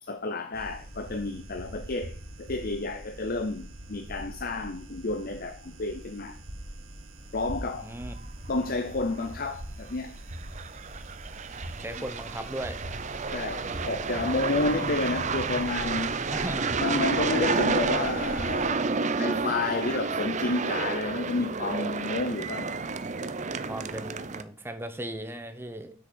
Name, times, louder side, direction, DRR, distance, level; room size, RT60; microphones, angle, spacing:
voice 1, 0.0-6.4 7.3-7.9 8.5-10.2 13.3-16.2 16.8-18.9 19.1-22.8, left 3 dB, 45° left, 0.7 m, -30 dB
sound 1, 0.5-18.7, right 1 dB, 70° right, 2.0 m, -43 dB
voice 2, 7.8-8.1 11.8-12.8 16.3-16.8 17.1-17.3 23.6-25.9, right 1 dB, 10° right, 1.1 m, -37 dB
sound 2, 8.6-8.7 9.1-9.3 10.3-24.4, right 4 dB, 35° right, 0.6 m, -30 dB
7.8 x 6.6 x 6.8 m
head